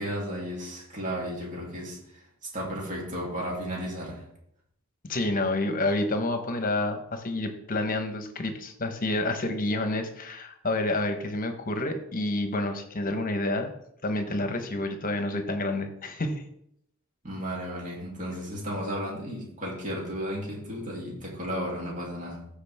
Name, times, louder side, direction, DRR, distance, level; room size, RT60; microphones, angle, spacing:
voice 1, 0.0-4.2 17.2-22.5, equal, 40° right, -3 dB, 2.9 m, -34 dB
voice 2, 5.0-13.7 14.0-16.4, left 2 dB, 40° left, 6 dB, 1.1 m, -29 dB
14.5 x 4.9 x 3.5 m, 0.73 s
head